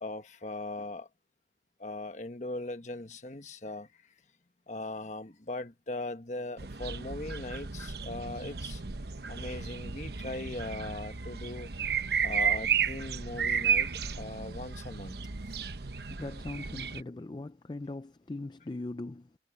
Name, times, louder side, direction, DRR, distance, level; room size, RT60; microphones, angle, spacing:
voice 1, 0.0-1.1 1.8-3.9 4.7-8.8 9.3-11.7 12.2-13.9 14.2-15.2, left 2 dB, 40° left, 1.2 m, -39 dB
sound 1, 6.6-17.0, right 6 dB, 65° right, 1.0 m, -33 dB
voice 2, 15.8-19.4, left 2 dB, 25° left, 0.4 m, -40 dB
head